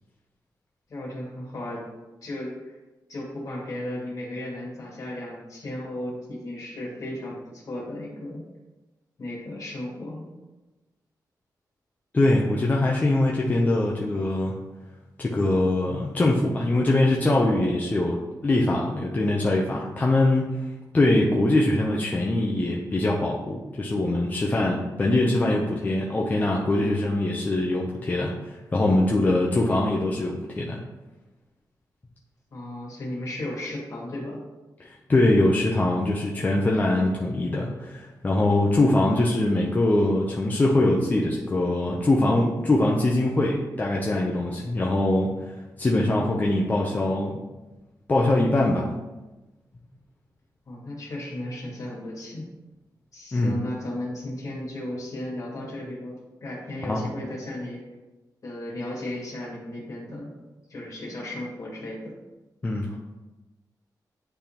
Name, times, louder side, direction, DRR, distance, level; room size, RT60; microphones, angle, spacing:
voice 1, 0.9-1.8 2.2-2.8 3.1-8.4 9.2-10.3 32.5-34.4 44.6-44.9 50.7-52.5 53.1-57.8 58.4-60.3 60.7-62.1, left 1 dB, 50° left, -4 dB, 2.1 m, -35 dB
voice 2, 12.1-14.5 15.2-20.7 20.9-30.8 34.8-45.5 45.8-47.4 48.1-48.9 53.3-53.6 56.8-57.0 62.6-63.0, left 2 dB, 25° left, -2 dB, 0.6 m, -23 dB
9.8 x 3.4 x 2.9 m, 1.1 s
wide cardioid pair, 160°, 7 cm